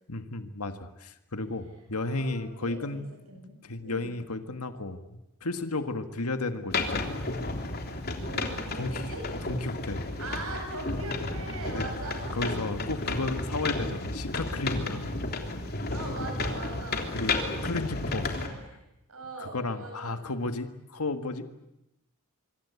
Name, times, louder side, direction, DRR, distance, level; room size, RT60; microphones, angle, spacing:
voice 1, 0.1-3.0 3.4-5.0 5.4-7.3 8.8-9.1 9.4-10.1 11.7-11.8 12.3-15.0 15.6-15.7 17.1-17.3 17.6-18.4 19.4-21.4, left 2 dB, 85° left, 8 dB, 1.8 m, -33 dB
voice 2, 2.0-3.5 3.8-4.1 8.2-9.3 10.2-12.5 15.9-17.5 18.4-18.8 19.1-20.2, right 2 dB, 70° right, 2 dB, 7.9 m, -41 dB
sound 1, 6.7-18.5, left 2 dB, 45° left, 3.4 m, -32 dB
25.0 x 25.0 x 8.4 m, 0.87 s
head